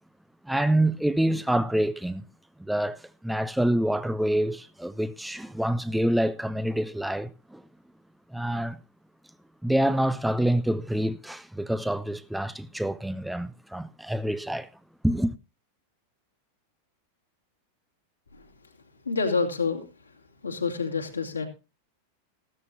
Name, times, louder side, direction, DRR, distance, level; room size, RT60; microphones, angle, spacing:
voice 1, 0.4-2.2 2.6-7.6 8.3-8.8 9.6-14.7 15.0-15.3, right 1 dB, 5° right, 0.5 m, -26 dB
voice 2, 19.0-19.8 20.4-21.5, left 4 dB, 80° left, 2.4 m, -27 dB
15.5 x 13.0 x 2.7 m
figure-of-eight pair, 90°, 0 cm